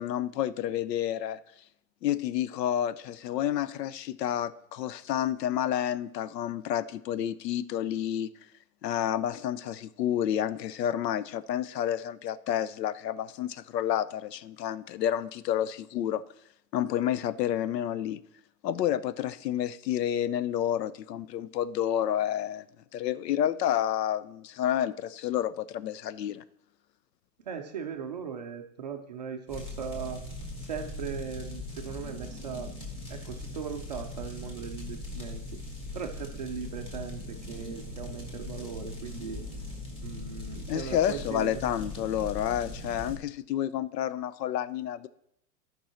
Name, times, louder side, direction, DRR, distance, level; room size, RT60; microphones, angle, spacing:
voice 1, 0.0-1.4 2.0-8.3 8.8-16.2 16.7-18.2 18.6-22.6 22.9-26.4 40.7-45.1, left 11 dB, 85° left, 0.7 m, -30 dB
voice 2, 27.5-30.2 30.6-32.7 33.1-35.6 35.9-39.4 40.0-41.6, right 7 dB, 30° right, 0.4 m, -38 dB
sound 1, 29.5-43.2, left 2 dB, 10° left, 1.7 m, -40 dB
12.0 x 5.4 x 4.3 m
hypercardioid pair, 160°, 48 cm